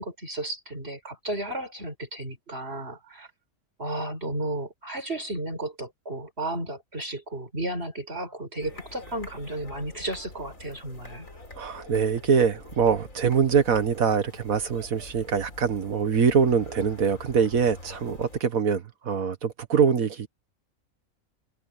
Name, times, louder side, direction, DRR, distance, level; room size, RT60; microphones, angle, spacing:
voice 1, 0.0-3.3 3.8-11.3, right 1 dB, 50° right, 5.7 m, -33 dB
sound 1, 8.6-18.4, left 2 dB, 75° left, 5.2 m, -45 dB
voice 2, 11.6-20.3, right 6 dB, 85° right, 1.9 m, -24 dB
open air
omnidirectional pair, 1.4 m